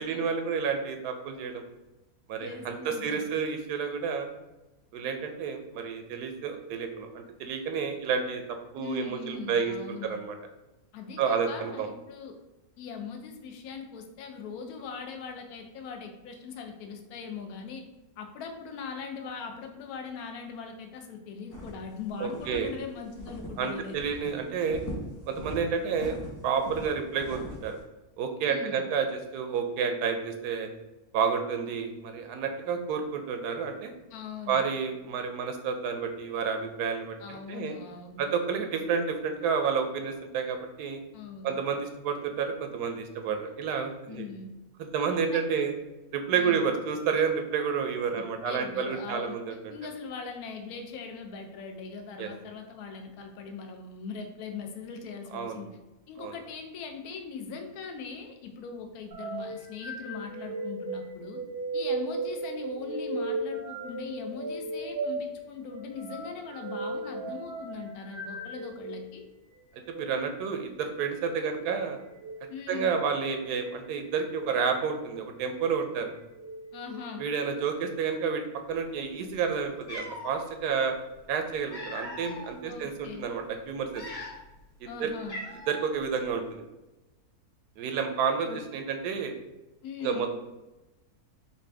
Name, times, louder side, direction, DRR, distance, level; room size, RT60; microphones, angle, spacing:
voice 1, 0.0-1.6 2.3-4.3 4.9-10.4 11.2-11.9 22.2-22.7 23.6-24.8 25.3-26.2 26.4-27.8 28.2-30.7 31.1-33.9 34.5-37.7 38.2-41.0 41.4-44.3 44.8-45.7 46.1-49.7 52.2-52.3 55.3-55.6 56.2-56.3 69.7-72.0 72.7-76.1 77.2-80.9 81.3-84.0 84.8-85.1 85.7-86.6 87.8-89.3 90.0-90.4, right 6 dB, 90° right, 6 dB, 1.1 m, -30 dB
voice 2, 2.4-3.3 8.8-10.2 10.9-12.4 12.8-17.8 18.2-24.2 28.4-28.8 34.1-34.7 37.2-38.3 41.1-41.6 44.1-44.6 45.3-45.6 46.3-46.7 48.1-49.4 49.7-55.8 56.1-61.4 61.7-69.2 72.5-73.0 76.7-77.3 82.7-83.3 84.9-85.4 89.8-90.3, left 5 dB, 75° left, 4 dB, 1.1 m, -40 dB
sound 1, 21.5-21.9 22.3-22.7 23.2-23.7 23.9-24.3 24.6-25.6 25.9-27.7, equal, 20° left, 0.4 m, -40 dB
sound 2, 59.1-69.0 69.8-70.1 72.1-72.4 73.2-73.7 74.3-74.6 75.4-75.9 76.3-77.4, right 3 dB, 55° right, 0.6 m, -36 dB
Cat, 79.3-79.4 79.8-80.3 81.3-82.5 83.0-83.2 83.8-84.6 84.9-85.0 85.3-85.9, left 1 dB, 55° left, 1.3 m, -40 dB
4.3 x 2.5 x 3.3 m, 1.0 s
omnidirectional pair, 1.6 m